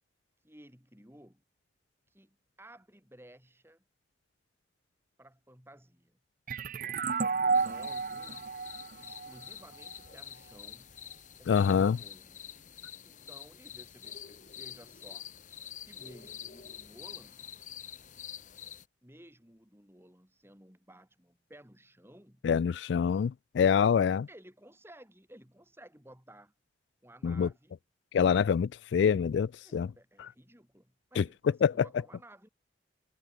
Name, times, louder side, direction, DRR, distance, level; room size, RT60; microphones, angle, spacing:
voice 1, 0.4-1.4 2.1-3.8 5.2-6.2 6.7-7.1 7.4-8.5 9.0-10.9 11.4-12.3 13.0-15.3 15.9-17.4 19.0-22.4 24.3-26.5 27.0-27.7 29.6-32.5, right 1 dB, 15° right, 6.2 m, -55 dB
sound 1, 6.5-9.9, right 4 dB, 50° right, 0.7 m, -32 dB
sound 2, 7.5-18.8, left 9 dB, 40° left, 1.0 m, -47 dB
voice 2, 11.5-12.0 22.4-24.3 27.2-27.5 28.1-29.9 31.2-31.3 31.6-31.7, left 7 dB, 70° left, 0.3 m, -25 dB
head